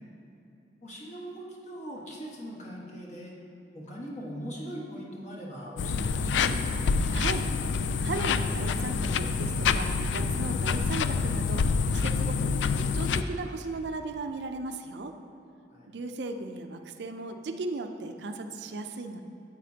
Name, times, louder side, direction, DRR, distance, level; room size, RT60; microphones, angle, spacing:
voice 1, 0.8-3.3 3.7-6.9 15.7-15.9, equal, 40° left, -3 dB, 1.4 m, -40 dB
sound 1, 5.8-13.2, left 5 dB, 90° left, 0.3 m, -27 dB
voice 2, 7.1-7.5 8.0-11.6 11.9-15.1 15.9-19.2, right 2 dB, 70° right, 6 dB, 0.5 m, -36 dB
9.3 x 8.2 x 2.8 m, 2.8 s
head